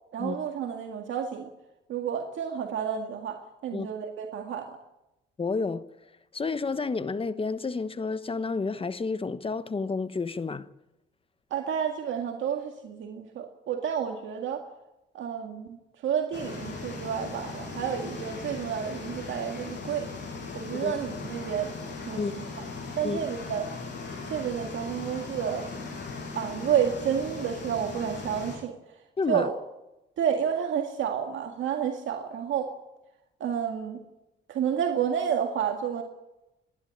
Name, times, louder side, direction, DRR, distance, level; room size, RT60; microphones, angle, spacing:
voice 1, 0.1-1.5 1.9-4.8 11.5-14.7 15.1-20.1 20.5-21.7 22.1-22.6 22.9-23.7 24.3-25.7 26.4-28.8 29.3-29.5 30.2-32.7 33.4-34.0 34.5-36.0, right 8 dB, 75° right, 2.0 m, -30 dB
voice 2, 5.4-5.8 6.3-10.7 20.8-20.9 22.2-22.3 23.0-23.2 29.2-29.5, left 4 dB, 25° left, 1.1 m, -30 dB
sound 1, 16.3-28.6, left 3 dB, 65° left, 7.0 m, -38 dB
27.0 x 11.5 x 8.9 m
cardioid pair, 90°, 20 cm